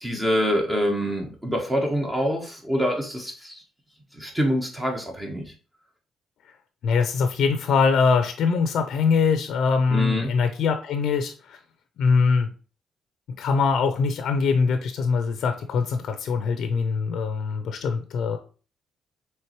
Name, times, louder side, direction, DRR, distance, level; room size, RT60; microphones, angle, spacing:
voice 1, 0.0-3.6 4.1-5.5 9.9-10.3, equal, 15° right, 2 dB, 1.0 m, -25 dB
voice 2, 6.8-11.6 12.0-12.5 13.4-18.4, left 5 dB, 70° left, 7 dB, 0.5 m, -22 dB
4.5 x 3.1 x 3.0 m, 0.36 s
cardioid pair, 90°, 0 cm